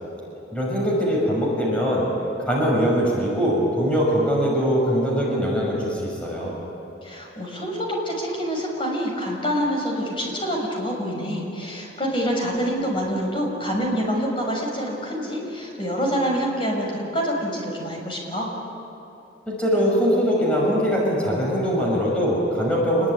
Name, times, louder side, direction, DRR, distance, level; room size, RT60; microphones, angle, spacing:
voice 1, 0.5-2.1 2.5-6.6 19.5-23.1, equal, 5° left, -4 dB, 6.1 m, -22 dB
voice 2, 7.0-18.5, equal, 30° left, 0 dB, 6.3 m, -26 dB
28.0 x 21.5 x 9.7 m, 2.8 s
head